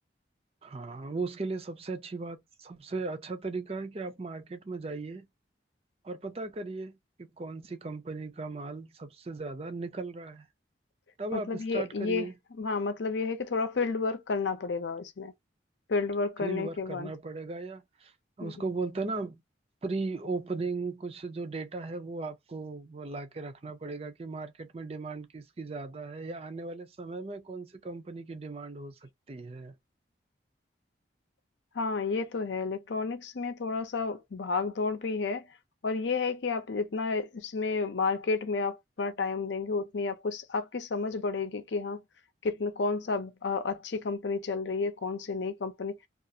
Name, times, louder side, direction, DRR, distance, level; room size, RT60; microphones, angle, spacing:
voice 1, 0.6-5.3 6.0-10.5 11.2-12.3 16.4-18.1 18.4-19.4 19.8-29.7, right 3 dB, 30° right, 0.4 m, -37 dB
voice 2, 11.3-12.3 12.6-15.3 15.9-17.1 18.4-18.5 31.7-35.5 35.8-42.0 42.4-46.0, left 4 dB, 75° left, 0.6 m, -31 dB
2.4 x 2.4 x 2.7 m
head